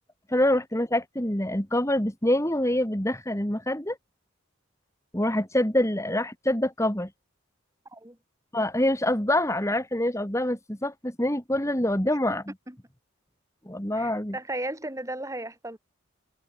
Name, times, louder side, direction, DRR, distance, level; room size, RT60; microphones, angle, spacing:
voice 1, 0.3-4.0 5.1-7.1 8.5-12.4 13.7-14.4, left 1 dB, 15° left, 2.5 m, -25 dB
voice 2, 12.1-12.4 12.7-12.8 14.0-15.8, right 1 dB, 15° right, 3.8 m, -35 dB
head